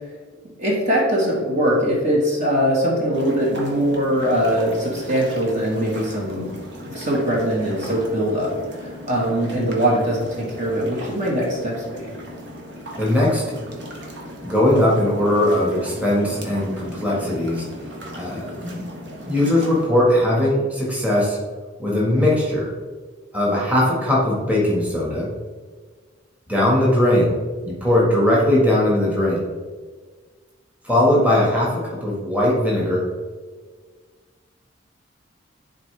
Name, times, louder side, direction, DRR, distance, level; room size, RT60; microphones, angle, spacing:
voice 1, 0.6-6.5 6.8-12.1, equal, 35° right, -3 dB, 1.5 m, -22 dB
sound 1, 3.1-19.9, equal, 60° right, 1.4 m, -37 dB
voice 2, 13.0-13.4 14.4-17.6 18.1-18.9 19.2-21.4 21.8-22.7 23.3-25.3 26.5-27.3 27.6-29.5 30.8-33.1, left 1 dB, 5° right, -5 dB, 1.6 m, -19 dB
10.5 x 4.2 x 3.3 m, 1.5 s
head